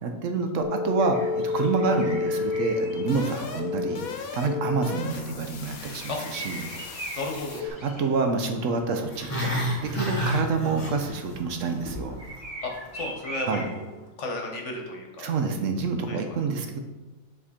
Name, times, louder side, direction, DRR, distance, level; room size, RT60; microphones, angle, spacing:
voice 1, 0.0-6.7 7.8-12.2 13.5-13.6 15.2-16.8, right 4 dB, 70° right, 5 dB, 1.0 m, -28 dB
sound 1, 0.6-7.7, left 4 dB, 85° left, 1.2 m, -31 dB
sound 2, 1.0-14.1, right 1 dB, 30° right, 2.3 m, -43 dB
voice 2, 7.2-7.6 12.6-15.3 16.1-16.4, left 2 dB, 60° left, 1 dB, 1.3 m, -34 dB
Growling, 9.0-11.4 11.6-12.0 12.4-12.5, equal, 25° left, 1.2 m, -29 dB
7.2 x 3.6 x 4.2 m, 1.1 s
omnidirectional pair, 1.5 m